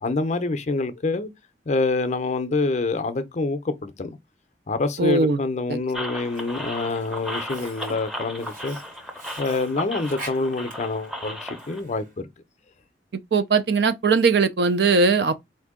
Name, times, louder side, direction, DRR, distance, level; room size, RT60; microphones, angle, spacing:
voice 1, 0.0-1.3 1.7-4.2 4.7-8.8 9.4-12.3, left 3 dB, 40° left, 0.5 m, -26 dB
voice 2, 5.0-5.4 5.7-5.8 13.3-15.4, right 4 dB, 65° right, 0.5 m, -20 dB
sound 1, 5.9-11.8, left 1 dB, ahead, 0.6 m, -35 dB
Sink (filling or washing), 6.2-12.2, right 2 dB, 50° right, 1.4 m, -44 dB
4.3 x 2.6 x 3.6 m
head